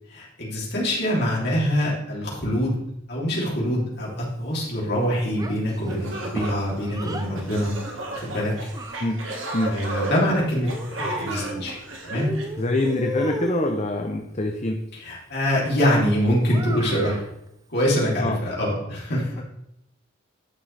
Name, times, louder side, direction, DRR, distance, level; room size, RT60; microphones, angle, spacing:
voice 1, 0.1-2.8 3.1-7.7 8.1-8.5 9.6-11.8 12.0-12.3 14.9-17.2 17.7-19.4, equal, 55° left, -5 dB, 3.1 m, -24 dB
Child speech kid speaking, 5.3-7.3 8.2-9.5 10.6-11.8 12.1-13.9 16.4-17.3, right 1 dB, 20° right, 0.6 m, -35 dB
sound 1, 5.5-5.6 5.9-13.0, right 2 dB, 90° right, 1.7 m, -34 dB
voice 2, 12.6-14.8 18.2-18.4 19.4-19.5, left 2 dB, 35° left, 4 dB, 0.7 m, -25 dB
11.5 x 6.4 x 3.4 m, 0.81 s
head